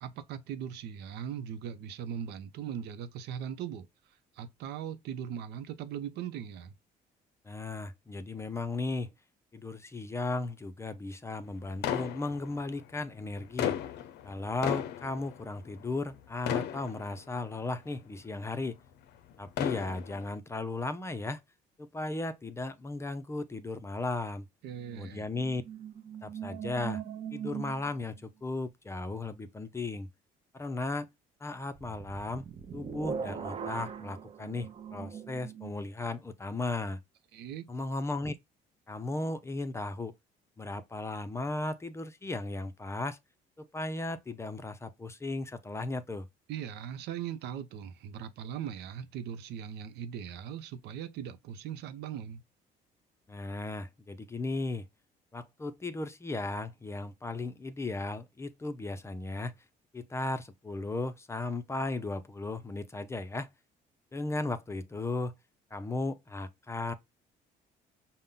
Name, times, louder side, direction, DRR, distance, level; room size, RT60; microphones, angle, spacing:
voice 1, 0.0-3.9 4.4-6.7 24.6-25.3 37.3-37.7 46.5-52.4, right 9 dB, 80° right, 0.6 m, -39 dB
voice 2, 7.4-9.1 9.5-13.8 14.2-18.8 19.4-21.4 21.8-24.5 24.9-25.6 26.2-27.0 27.3-30.1 30.5-31.1 31.4-32.5 32.7-37.0 37.7-38.3 38.9-40.2 40.6-43.2 43.6-46.3 53.3-54.9 55.3-59.5 59.9-63.5 64.1-65.3 65.7-66.9, left 2 dB, 15° left, 0.5 m, -36 dB
sound 1, 11.8-12.8 13.4-16.2 16.5-17.5 18.2-18.3 19.3-20.4, left 10 dB, 80° left, 0.6 m, -34 dB
sound 2, 25.0-28.2 31.7-35.7, right 7 dB, 35° right, 0.7 m, -41 dB
5.4 x 2.1 x 3.7 m
cardioid pair, 110°, 17 cm